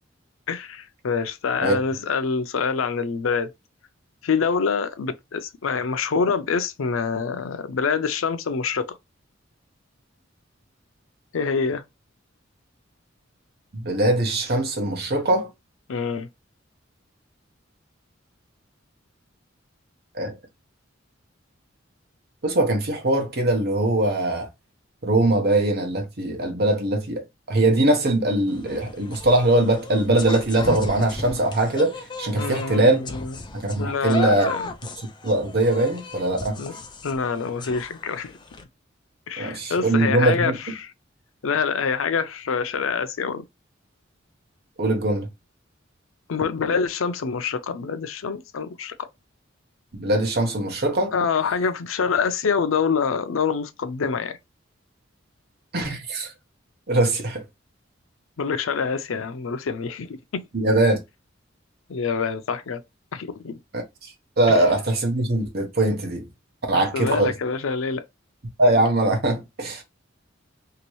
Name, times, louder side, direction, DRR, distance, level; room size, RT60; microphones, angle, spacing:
voice 1, 0.5-3.5 4.2-9.0 11.3-11.8 15.9-16.3 32.3-33.3 33.8-34.7 36.6-36.7 37.0-38.3 39.3-40.9 41.4-43.4 46.3-48.9 51.1-54.4 58.4-60.5 61.9-62.8 63.1-63.6 66.7-68.1, left 5 dB, 85° left, 0.5 m, -26 dB
voice 2, 13.7-15.5 20.1-20.3 22.4-24.5 25.0-33.0 33.5-34.5 35.2-36.6 39.4-40.6 44.8-45.3 49.9-51.1 55.7-56.3 56.9-57.4 60.5-61.0 63.7-66.3 66.7-67.3 68.6-69.8, right 1 dB, 55° right, 1.1 m, -21 dB
sound 1, 28.5-38.6, left 3 dB, 25° left, 0.5 m, -36 dB
3.0 x 2.9 x 3.0 m
head